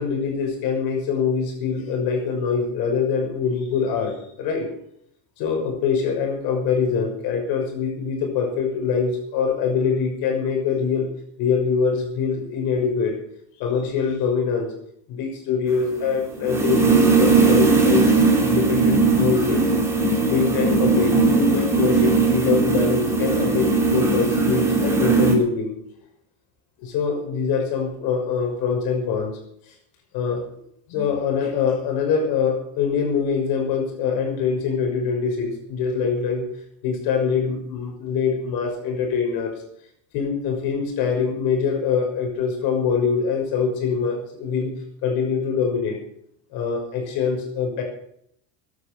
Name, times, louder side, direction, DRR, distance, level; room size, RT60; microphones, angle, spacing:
voice 1, 0.0-4.7 5.4-11.1 11.4-13.2 13.6-14.7 15.1-18.1 18.4-19.6 20.3-25.7 26.8-29.3 30.1-30.6 30.9-36.5 36.8-39.5 40.1-44.7 45.0-46.0 46.5-47.8, left 6 dB, 65° left, 3 dB, 6.2 m, -24 dB
sound 1, 15.7-25.3, right 3 dB, 5° right, 3.4 m, -19 dB
15.0 x 12.0 x 7.0 m, 0.69 s
cardioid pair, 155°, 39 cm